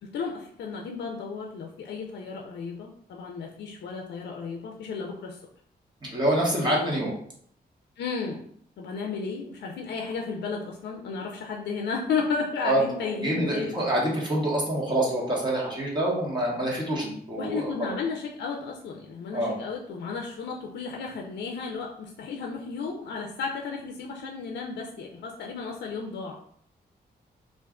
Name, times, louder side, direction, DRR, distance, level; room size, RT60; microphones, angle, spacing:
voice 1, 0.0-5.4 6.4-7.0 8.0-8.4 8.8-13.8 17.4-26.4, left 5 dB, 85° left, 0 dB, 0.4 m, -33 dB
voice 2, 6.0-7.1 12.6-12.8 13.2-17.9 19.3-19.5, right 1 dB, 25° right, -4 dB, 1.0 m, -26 dB
2.5 x 2.2 x 3.5 m, 0.63 s
cardioid pair, 80°, 17 cm